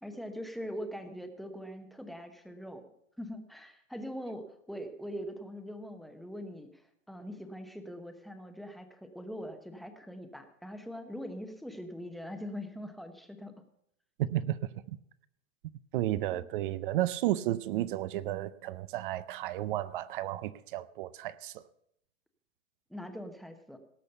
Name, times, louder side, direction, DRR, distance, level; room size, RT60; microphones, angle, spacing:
voice 1, 0.0-2.8 3.2-13.6 16.3-16.5 22.9-23.8, equal, ahead, 6 dB, 0.9 m, -42 dB
voice 2, 14.2-15.0 15.9-21.6, right 14 dB, 40° right, 17 dB, 0.5 m, -33 dB
18.0 x 6.3 x 6.8 m, 0.74 s
hypercardioid pair, 145°, 41 cm